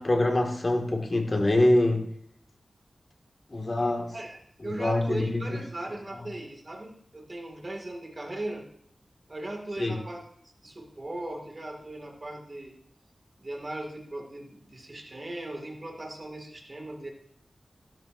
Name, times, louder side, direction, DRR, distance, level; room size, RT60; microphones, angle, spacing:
voice 1, 0.0-2.1 3.5-4.1 4.6-5.6 9.8-9.9, left 1 dB, 40° left, 3 dB, 1.8 m, -25 dB
voice 2, 4.1-8.7 9.3-10.3 10.6-12.8 13.4-17.1, right 1 dB, 35° right, 2 dB, 2.0 m, -38 dB
15.5 x 12.5 x 2.6 m, 0.67 s
wide cardioid pair, 90°, 0 cm